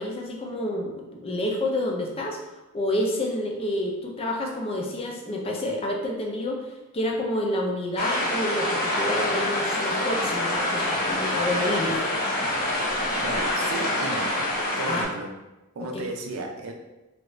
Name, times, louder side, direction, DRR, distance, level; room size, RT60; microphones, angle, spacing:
voice 1, 0.0-2.4 2.7-12.0 14.9-15.0, left 1 dB, 25° left, 0 dB, 0.4 m, -29 dB
sound 1, 8.0-15.0, left 1 dB, 45° left, 0.9 m, -26 dB
voice 2, 13.2-14.4 14.8-15.3 15.8-16.7, right 2 dB, 85° right, 2 dB, 0.5 m, -34 dB
2.8 x 2.4 x 3.0 m, 1.0 s
head